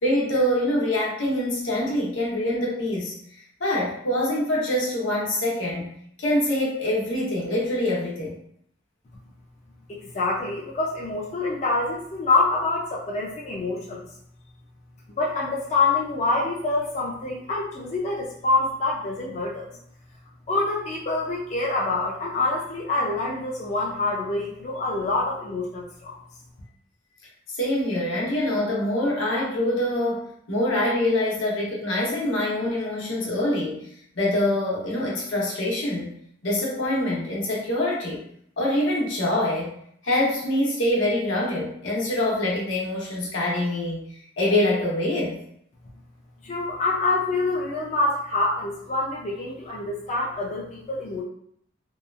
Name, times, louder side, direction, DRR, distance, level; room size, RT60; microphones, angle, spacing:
voice 1, 0.0-3.1 3.6-8.4 27.6-33.9 34.1-36.1 36.4-38.2 38.6-39.8 40.0-44.0 44.4-45.4, left 1 dB, 85° left, -4 dB, 0.8 m, -25 dB
voice 2, 9.9-14.1 15.1-19.7 20.5-26.1 46.4-51.2, left 3 dB, 35° left, -4 dB, 0.4 m, -26 dB
2.7 x 2.3 x 2.3 m, 0.68 s
head